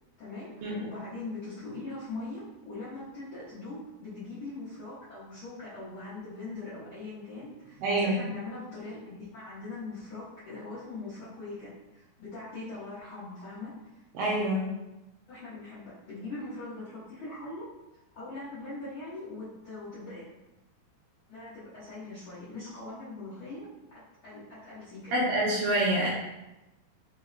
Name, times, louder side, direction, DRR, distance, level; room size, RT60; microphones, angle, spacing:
voice 1, 0.2-13.7 15.3-17.7 18.1-20.2 21.3-25.3, left 2 dB, 80° left, -12 dB, 1.2 m, -41 dB
voice 2, 7.8-8.2 14.1-14.7 25.1-26.1, right 1 dB, 80° right, -4 dB, 2.1 m, -26 dB
5.5 x 2.1 x 2.5 m, 0.98 s
omnidirectional pair, 4.1 m